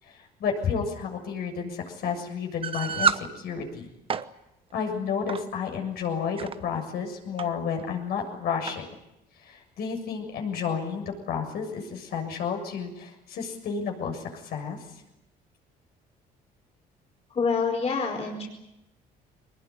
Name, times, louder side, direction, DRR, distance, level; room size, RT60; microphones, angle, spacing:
voice 1, 0.0-3.9 4.7-8.9 9.4-14.8, left 6 dB, 65° left, 3 dB, 7.1 m, -31 dB
sound 1, 2.6-3.3 3.9-4.3 5.3-5.5 6.2-6.5 7.4-7.5 7.8-7.9 8.7-8.8, right 6 dB, 35° right, 1.0 m, -27 dB
voice 2, 17.3-18.5, left 5 dB, 40° left, 0 dB, 4.9 m, -26 dB
22.5 x 20.5 x 9.9 m, 0.90 s
cardioid pair, 110°, 17 cm